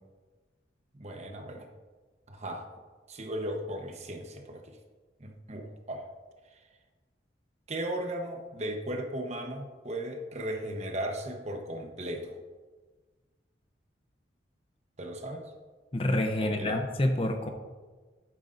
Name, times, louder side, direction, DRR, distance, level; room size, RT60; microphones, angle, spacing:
voice 1, 1.0-1.7 2.3-2.7 3.1-4.8 5.2-6.1 7.7-12.4 15.0-15.4 16.4-16.8, right 1 dB, 35° right, 3 dB, 1.0 m, -36 dB
voice 2, 15.9-17.5, left 1 dB, 30° left, 5 dB, 0.7 m, -27 dB
11.5 x 9.5 x 2.6 m, 1.4 s
head